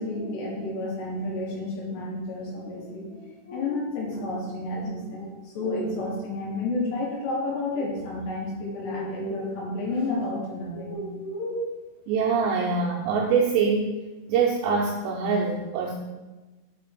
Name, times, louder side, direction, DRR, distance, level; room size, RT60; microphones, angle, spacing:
voice 1, 0.0-11.7, left 2 dB, 70° left, -2 dB, 3.0 m, -31 dB
voice 2, 12.1-14.0 14.3-15.9, right 5 dB, 85° right, -1 dB, 2.5 m, -24 dB
7.5 x 4.7 x 5.7 m, 1.2 s
omnidirectional pair, 5.7 m